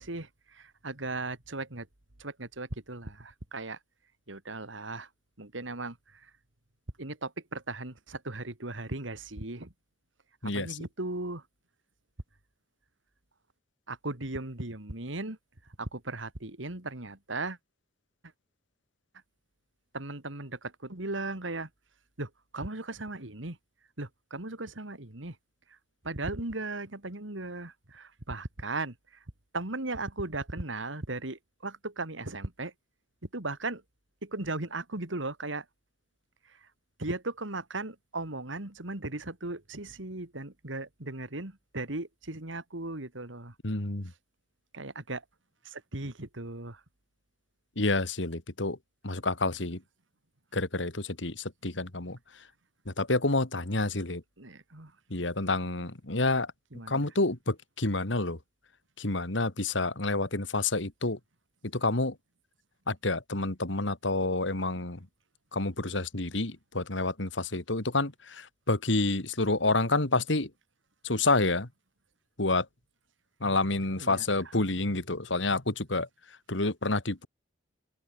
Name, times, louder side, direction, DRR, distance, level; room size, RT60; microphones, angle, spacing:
voice 1, 0.0-1.9 2.2-3.8 4.3-5.1 5.4-6.3 7.0-9.7 10.4-11.4 13.9-15.4 15.8-17.6 19.9-21.7 22.2-23.6 24.0-25.4 25.7-25.8 26.0-29.2 29.5-32.7 33.3-33.8 34.2-35.6 36.5-36.7 37.0-43.5 44.7-45.2 45.6-46.8 54.4-54.9 56.7-57.1 74.0-74.4, right 2 dB, 80° right, 2.9 m, -37 dB
voice 2, 10.4-10.8 43.6-44.1 47.8-48.8 49.0-49.8 50.5-52.2 52.9-54.2 55.1-56.5 56.9-58.4 59.0-61.2 61.7-62.1 62.9-65.0 65.5-70.5 71.0-71.7 72.4-72.7 73.4-76.1 76.5-77.3, left 2 dB, 70° left, 2.5 m, -28 dB
open air
head